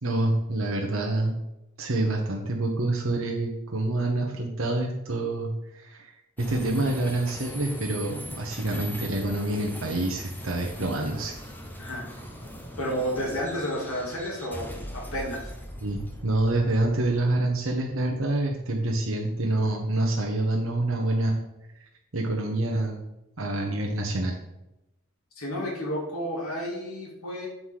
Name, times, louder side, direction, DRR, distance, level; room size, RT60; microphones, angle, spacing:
voice 1, 0.0-1.4 1.8-6.1 6.4-11.3 15.8-21.4 22.1-23.0 23.4-24.4, right 2 dB, 65° right, 0 dB, 1.0 m, -27 dB
sound 1, 6.4-19.7, equal, 10° left, 1.0 m, -41 dB
voice 2, 11.8-12.5 12.8-15.5 25.4-27.5, equal, 85° left, -2 dB, 2.2 m, -31 dB
7.7 x 4.9 x 5.8 m, 0.91 s
head